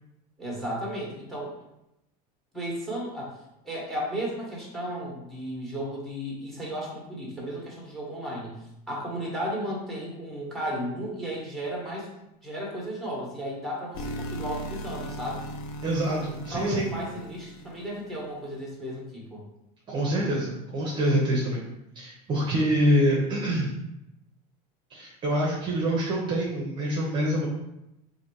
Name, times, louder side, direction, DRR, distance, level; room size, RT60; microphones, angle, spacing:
voice 1, 0.4-1.5 2.5-3.3 3.6-12.1 12.4-15.4 16.5-19.4, equal, ahead, -3 dB, 1.3 m, -34 dB
sound 1, 13.9-18.2, equal, 65° left, 0.6 m, -38 dB
voice 2, 15.8-16.9 19.9-21.6 21.9-23.7 24.9-27.5, right 1 dB, 25° right, -3 dB, 0.8 m, -25 dB
4.0 x 2.6 x 4.5 m, 0.87 s
cardioid pair, 150°, 17 cm